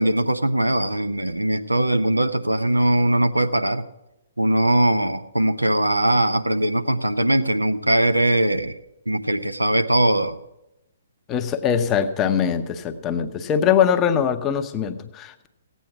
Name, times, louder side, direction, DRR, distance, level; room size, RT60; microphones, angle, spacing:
voice 1, 0.0-3.8 4.4-8.8 9.1-10.4, right 1 dB, 85° right, 9 dB, 0.8 m, -20 dB
voice 2, 11.3-15.5, left 8 dB, 20° left, 8 dB, 0.8 m, -22 dB
15.5 x 9.3 x 5.9 m, 0.89 s
figure-of-eight pair, 125°, 0 cm